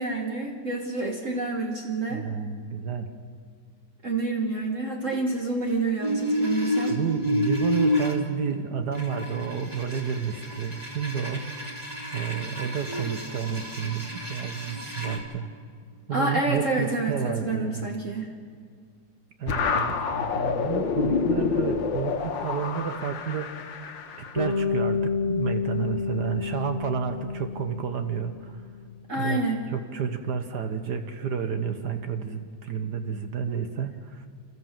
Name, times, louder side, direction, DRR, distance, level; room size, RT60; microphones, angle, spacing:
voice 1, 0.0-2.3 4.0-7.0 12.9-13.1 16.1-18.3 29.1-29.6 33.5-33.6, right 2 dB, 45° right, 1 dB, 1.7 m, -28 dB
voice 2, 2.1-3.1 6.9-11.4 12.1-15.5 16.1-17.9 19.4-23.9 24.3-28.7 29.1-29.4 29.7-34.3, right 7 dB, 65° right, 7 dB, 1.6 m, -31 dB
sound 1, 6.0-8.1 8.9-15.2, equal, 20° right, 2.8 m, -30 dB
sound 2, 19.5-24.5, left 5 dB, 80° left, 2.0 m, -28 dB
Bass guitar, 24.4-28.6, left 5 dB, 40° left, 1.9 m, -29 dB
30.0 x 14.0 x 7.5 m, 2.1 s
omnidirectional pair, 2.0 m